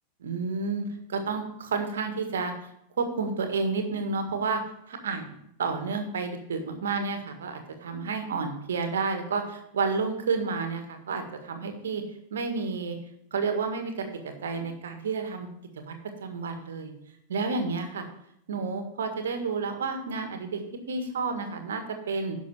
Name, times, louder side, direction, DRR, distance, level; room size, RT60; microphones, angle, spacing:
voice 1, 0.2-2.5 3.0-4.6 4.9-5.3 5.6-12.0 12.3-13.0 13.3-15.5 15.8-15.9 16.2-16.9 17.3-18.0 18.5-20.6 20.9-22.4, right 4 dB, 65° right, 6 dB, 1.6 m, -30 dB
11.0 x 6.2 x 5.9 m, 0.76 s
figure-of-eight pair, 90°, 0 cm